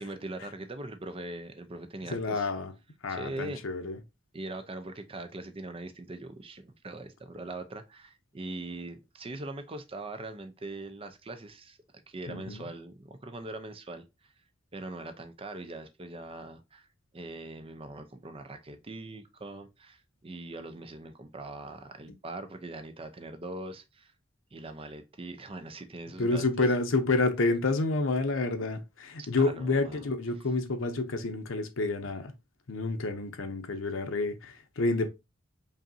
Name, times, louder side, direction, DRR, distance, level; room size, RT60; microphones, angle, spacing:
voice 1, 0.0-2.5 3.1-3.6 4.3-11.8 12.1-14.0 14.7-16.9 17.1-24.1 24.5-26.7 29.2-30.1, right 2 dB, 30° right, 0.6 m, -41 dB
voice 2, 2.1-2.7 3.0-4.0 12.3-12.6 26.2-32.3 32.7-35.1, left 3 dB, 85° left, 0.7 m, -29 dB
5.2 x 2.7 x 2.7 m
head